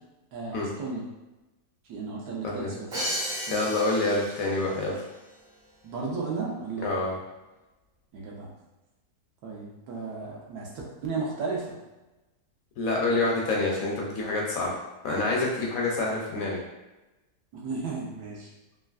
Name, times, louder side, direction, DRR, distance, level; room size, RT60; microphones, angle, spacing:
voice 1, 0.3-1.0 1.8-2.9 3.4-3.6 5.8-6.9 8.1-8.5 9.4-10.7 11.0-11.7 15.6-15.7 17.5-18.5, right 4 dB, 75° right, -3 dB, 1.2 m, -34 dB
Crash cymbal, 2.9-4.8, equal, 50° right, 1.0 m, -33 dB
voice 2, 3.5-5.0 6.8-7.2 12.8-14.7 15.0-16.6, left 2 dB, 70° left, -2 dB, 0.9 m, -27 dB
3.1 x 2.5 x 2.3 m, 1.1 s
omnidirectional pair, 1.7 m